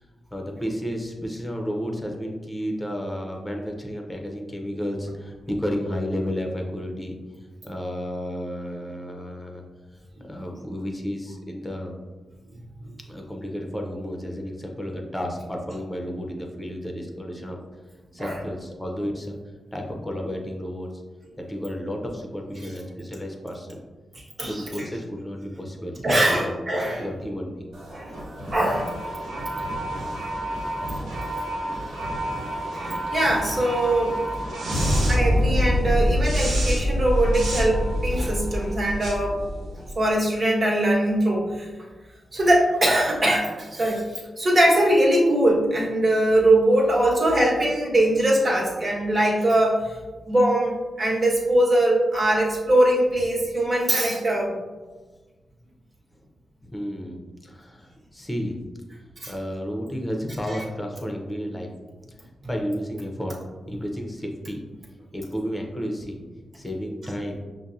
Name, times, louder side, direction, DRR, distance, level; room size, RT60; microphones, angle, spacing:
voice 1, 0.3-9.6 9.9-12.0 13.1-17.6 18.1-19.4 19.7-20.9 21.4-23.8 24.4-26.5 27.0-27.7 56.6-58.6 59.3-61.7 62.5-63.3 63.7-64.6 65.1-66.2 66.5-67.4, equal, 15° left, 1 dB, 0.9 m, -32 dB
voice 2, 24.4-24.9 26.0-27.0 27.9-28.2 28.5-28.9 32.7-34.2 35.1-39.4 39.9-41.7 42.3-50.0 50.2-54.5 59.2-59.3, right 1 dB, 45° right, -4 dB, 1.4 m, -21 dB
sound 1, 27.7-40.1, equal, 90° right, 0.9 m, -26 dB
5.7 x 2.2 x 2.6 m, 1.3 s
cardioid pair, 50°, 0 cm